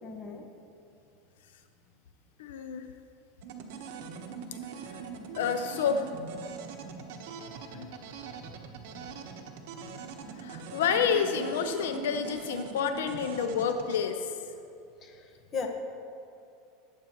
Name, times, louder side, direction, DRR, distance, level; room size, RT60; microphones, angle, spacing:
voice 1, 0.0-0.4 8.9-9.1 15.0-15.7, left 5 dB, 30° left, 2 dB, 1.4 m, -38 dB
voice 2, 2.4-2.9 4.9-5.0 5.3-6.1 7.7-7.9 9.9-10.0 10.4-14.4, left 6 dB, 85° left, 7 dB, 0.6 m, -29 dB
sound 1, 3.4-14.0, right 6 dB, 70° right, 1.1 m, -42 dB
19.5 x 8.3 x 3.1 m, 2.6 s
supercardioid pair, 135°, 0 cm